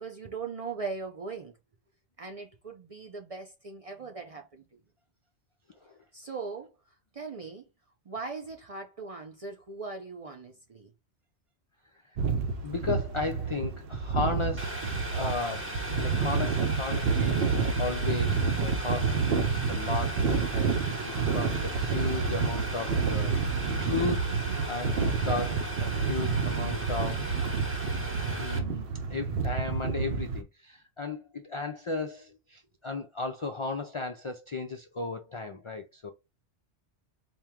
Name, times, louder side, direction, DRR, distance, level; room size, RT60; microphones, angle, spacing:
voice 1, 0.0-1.5 2.2-4.8 6.1-7.7 8.1-10.9, right 4 dB, 50° right, 0.4 m, -40 dB
sound 1, 12.2-30.4, right 5 dB, 65° right, 0.8 m, -29 dB
voice 2, 12.6-14.8 15.1-19.2 19.7-27.4 28.3-36.1, left 3 dB, 55° left, 0.3 m, -35 dB
Boiling, 14.6-28.6, right 1 dB, 10° right, 1.2 m, -38 dB
4.4 x 2.2 x 3.5 m
omnidirectional pair, 1.1 m